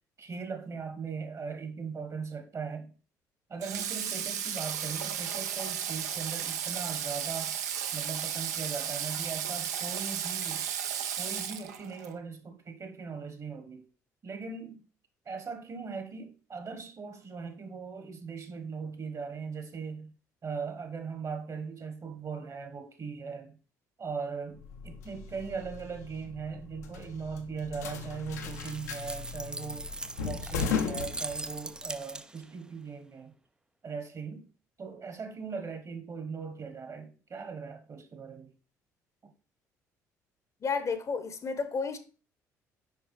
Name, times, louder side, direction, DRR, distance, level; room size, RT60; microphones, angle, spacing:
voice 1, 0.2-2.9 3.5-7.6 7.9-10.7 11.2-13.9 14.2-14.8 15.2-20.1 20.4-23.6 24.0-29.9 30.2-33.4 33.8-34.5 34.8-38.5 39.2-39.3, right 5 dB, 35° right, 1.1 m, -39 dB
Water / Water tap faucet, 3.6-12.1, right 9 dB, 75° right, 0.5 m, -34 dB
sound 1, 24.5-31.9, left 6 dB, 75° left, 0.6 m, -37 dB
sound 2, 28.4-32.5, right 2 dB, 10° right, 0.3 m, -40 dB
voice 2, 40.6-42.0, left 5 dB, 35° left, 0.8 m, -31 dB
5.9 x 5.2 x 3.2 m
figure-of-eight pair, 50°, 9 cm